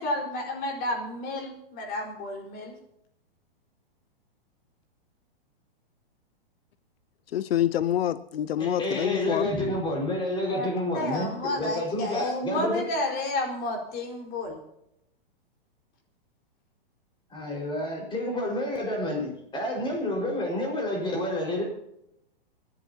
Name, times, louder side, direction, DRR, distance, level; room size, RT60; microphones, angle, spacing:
voice 1, 0.0-2.7 10.5-10.7 10.9-14.6, left 1 dB, 30° left, 1 dB, 4.7 m, -31 dB
voice 2, 7.3-9.5, left 11 dB, 80° left, 14 dB, 0.8 m, -26 dB
voice 3, 8.6-12.8 17.3-21.6, left 1 dB, 15° left, 0 dB, 5.1 m, -29 dB
26.5 x 11.0 x 2.9 m, 0.80 s
hypercardioid pair, 140°, 30 cm